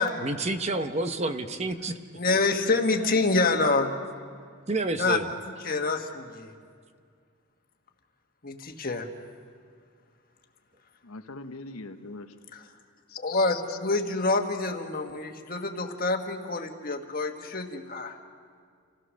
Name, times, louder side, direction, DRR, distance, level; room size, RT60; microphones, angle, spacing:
voice 1, 0.2-1.9 4.7-5.3, right 2 dB, 30° right, 8 dB, 0.9 m, -29 dB
voice 2, 2.1-3.9 5.0-5.2 5.6-6.5 8.4-9.1 13.2-18.2, left 3 dB, 40° left, 4 dB, 1.5 m, -27 dB
voice 3, 11.0-12.3 13.1-13.8, left 4 dB, 85° left, 7 dB, 1.0 m, -41 dB
28.5 x 16.0 x 6.4 m, 2.1 s
head